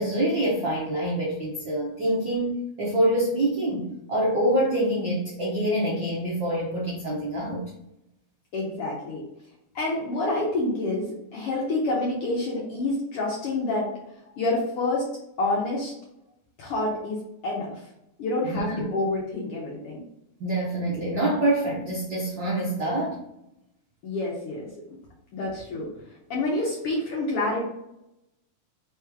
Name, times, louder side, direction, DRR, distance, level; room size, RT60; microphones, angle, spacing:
voice 1, 0.0-7.7 18.4-18.9 20.4-23.2, right 1 dB, 70° right, -5 dB, 1.1 m, -26 dB
voice 2, 8.5-9.2 9.7-13.9 14.4-15.0 15.4-15.9 16.6-17.9 18.2-20.0 24.0-25.0 25.3-27.7, left 2 dB, 65° left, -4 dB, 1.5 m, -28 dB
4.6 x 3.1 x 3.5 m, 0.82 s
omnidirectional pair, 3.4 m